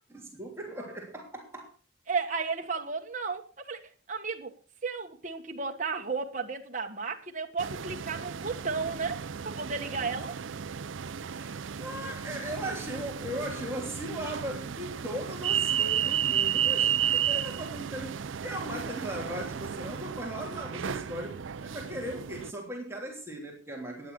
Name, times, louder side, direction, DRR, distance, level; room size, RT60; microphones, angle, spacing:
voice 1, 0.1-1.7 11.3-24.1, right 1 dB, 15° right, 3.2 m, -38 dB
voice 2, 2.1-4.5 4.8-10.4 12.0-12.1, right 4 dB, 40° right, 1.6 m, -34 dB
sound 1, 7.6-22.5, right 9 dB, 90° right, 0.5 m, -33 dB
14.0 x 10.0 x 6.1 m
head